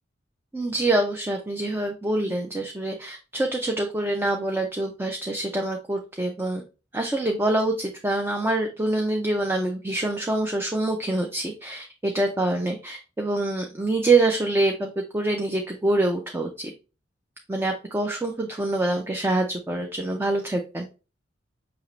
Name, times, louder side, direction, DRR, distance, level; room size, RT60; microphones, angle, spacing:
voice 1, 0.5-6.6 6.9-16.7 17.5-20.9, right 2 dB, 10° right, 2 dB, 0.4 m, -25 dB
5.3 x 2.9 x 3.0 m, 0.32 s
head